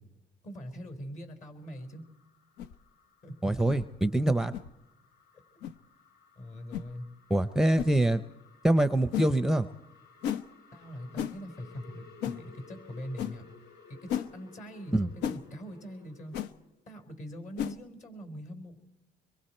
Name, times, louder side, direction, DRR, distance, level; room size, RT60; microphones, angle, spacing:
voice 1, 0.4-2.0 3.2-3.5 6.4-7.1 10.7-13.5 13.9-16.4 16.9-18.8, equal, 45° left, 7 dB, 4.3 m, -42 dB
sound 1, 1.6-16.7, left 4 dB, 70° left, 4.0 m, -58 dB
sound 2, 2.6-2.8 3.7-3.8 4.5-4.7 5.6-5.8 6.7-6.9 7.8-7.9 9.1-9.3 10.2-10.4 11.2-11.4 12.2-12.4 13.2-13.3 14.1-14.3 15.2-15.4 16.3-16.5 17.6-17.8, left 10 dB, 90° left, 0.9 m, -33 dB
voice 2, 3.4-4.5 7.3-8.2 8.6-9.7 14.9-15.1, right 1 dB, 5° right, 11 dB, 0.6 m, -24 dB
26.0 x 22.5 x 4.4 m, 0.90 s
cardioid pair, 110°, 17 cm